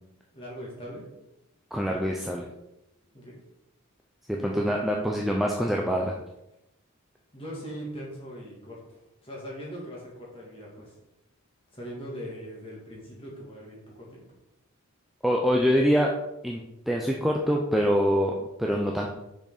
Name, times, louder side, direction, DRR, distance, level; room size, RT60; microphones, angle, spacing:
voice 1, 0.3-1.0 3.1-3.3 4.3-4.8 7.3-8.8 9.2-10.9 11.7-14.2, equal, 25° left, -4 dB, 2.6 m, -40 dB
voice 2, 1.7-2.5 4.3-6.2 15.2-16.1 16.4-19.1, equal, ahead, -1 dB, 0.6 m, -25 dB
6.4 x 6.2 x 4.2 m, 0.89 s
head